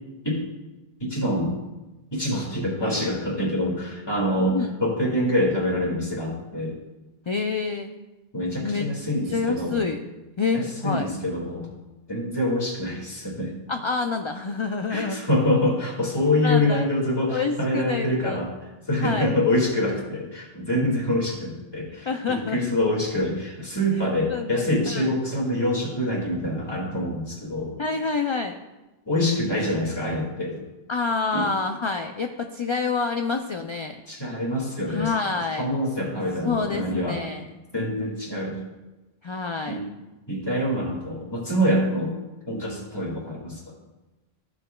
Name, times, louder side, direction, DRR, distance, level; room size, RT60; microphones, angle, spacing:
voice 1, 1.0-1.6 2.1-6.8 8.3-9.8 10.5-11.7 12.1-13.5 14.9-18.5 18.9-27.7 29.1-30.6 31.3-31.5 34.1-37.2 37.7-38.5 39.7-39.8 40.3-42.1 42.5-43.6, left 1 dB, 25° left, -3 dB, 2.1 m, -25 dB
voice 2, 7.3-7.9 8.6-8.9 9.3-10.0 10.4-11.1 13.7-15.2 16.4-16.9 17.3-18.4 19.0-19.3 22.1-22.6 24.3-25.1 27.8-28.6 30.9-34.0 34.9-35.6 36.4-37.5 39.2-39.8, left 4 dB, 50° left, 5 dB, 0.3 m, -27 dB
14.0 x 6.1 x 2.3 m, 1.1 s
omnidirectional pair, 1.0 m